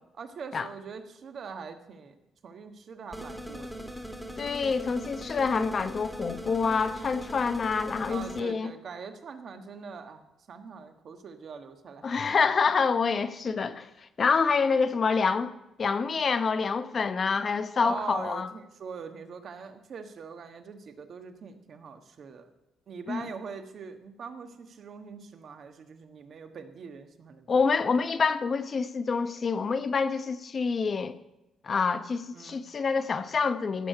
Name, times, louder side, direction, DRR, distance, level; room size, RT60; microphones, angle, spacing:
voice 1, 0.2-2.1 2.4-3.8 8.1-12.1 17.8-22.5 22.9-27.6 32.3-32.6, right 5 dB, 55° right, 1.4 m, -42 dB
sound 1, 3.1-8.4, equal, ahead, 1.7 m, -40 dB
voice 2, 4.4-8.7 12.0-13.9 14.2-15.5 15.8-18.5 23.1-23.2 27.5-31.2 31.6-33.9, left 5 dB, 45° left, 0.8 m, -27 dB
15.0 x 6.4 x 6.6 m
cardioid pair, 90°, 0 cm